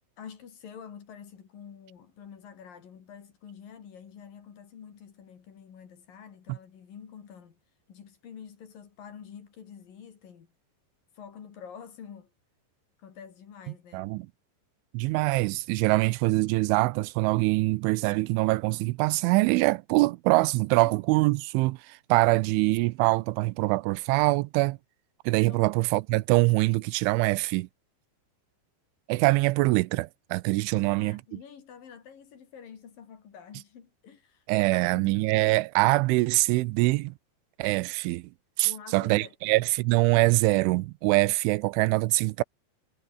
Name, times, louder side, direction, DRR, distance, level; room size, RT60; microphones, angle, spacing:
voice 1, 0.2-7.6 7.9-10.5 11.1-12.3 13.0-14.1 20.8-21.0 25.5-25.7 30.7-35.3 38.6-39.3, left 7 dB, 50° left, 4.1 m, -47 dB
voice 2, 13.9-14.3 14.9-24.8 25.3-27.7 29.1-31.2 34.5-37.1 37.6-38.3 38.6-42.4, right 22 dB, 90° right, 3.1 m, -24 dB
omnidirectional pair, 5.4 m